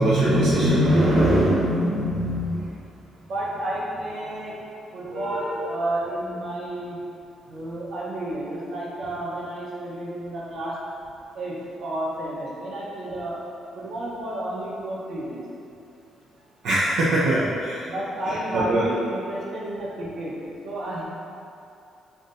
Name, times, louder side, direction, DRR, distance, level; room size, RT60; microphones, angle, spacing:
voice 1, 0.0-2.7 16.6-17.9 18.3-18.9, right 1 dB, 90° right, -8 dB, 0.5 m, -21 dB
voice 2, 3.3-4.6 4.9-7.0 7.5-10.8 11.3-13.4 13.7-15.4 17.9-21.0, right 1 dB, 65° right, -5 dB, 0.9 m, -31 dB
5.6 x 2.7 x 2.6 m, 2.7 s
cardioid pair, 90°, 0 cm